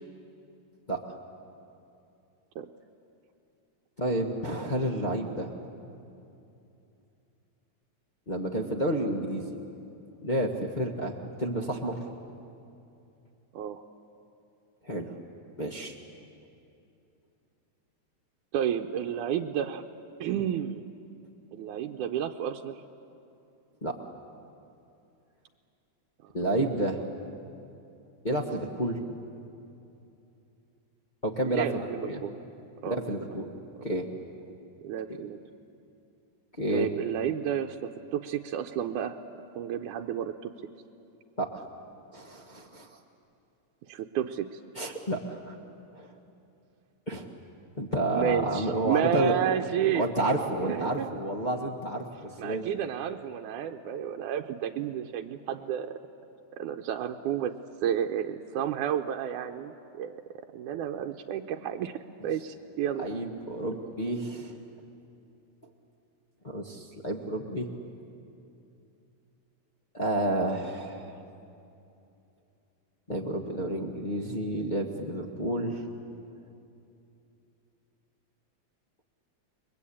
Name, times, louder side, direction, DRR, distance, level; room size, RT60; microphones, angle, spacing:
voice 1, 4.0-5.5 8.3-9.4 10.2-12.0 14.8-15.1 15.6-15.9 23.8-23.9 26.3-27.0 28.2-29.0 31.2-32.2 32.9-33.5 33.8-34.1 36.6-36.9 41.4-41.6 42.1-42.9 44.7-45.5 45.9-46.1 47.1-47.3 47.8-49.3 49.9-52.6 63.0-64.5 66.4-67.7 69.9-71.1 73.1-75.8, right 1 dB, 40° left, -1 dB, 0.6 m, -30 dB
voice 2, 18.5-19.8 20.2-20.9 21.5-22.8 26.2-26.3 31.4-32.4 32.8-33.0 34.8-35.4 36.7-39.2 39.5-40.5 43.9-44.6 48.1-50.0 50.6-51.1 52.4-56.0 56.5-57.5 57.8-60.2 60.5-63.2, right 9 dB, 85° right, 3 dB, 2.2 m, -31 dB
29.5 x 22.0 x 8.6 m, 2.7 s
omnidirectional pair, 3.5 m